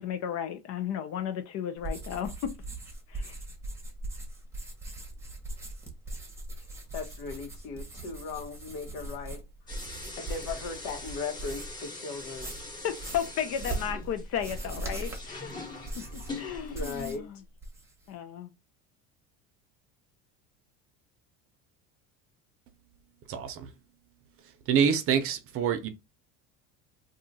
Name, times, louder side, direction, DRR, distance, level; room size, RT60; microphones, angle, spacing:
voice 1, 0.0-2.6 3.1-3.3 12.8-15.5 16.0-17.4 18.1-18.5, left 9 dB, 50° left, 0.6 m, -34 dB
sound 1, 1.8-11.8 12.2-17.3 17.5-18.1, right 2 dB, 10° right, 1.0 m, -40 dB
voice 2, 6.9-9.4 10.2-12.5 16.7-17.2, left 4 dB, 70° left, 1.2 m, -37 dB
sound 2, 9.7-17.1, left 2 dB, 15° left, 1.2 m, -43 dB
voice 3, 23.3-23.7 24.7-25.9, right 7 dB, 45° right, 0.7 m, -26 dB
2.7 x 2.4 x 4.0 m
cardioid pair, 140°, 32 cm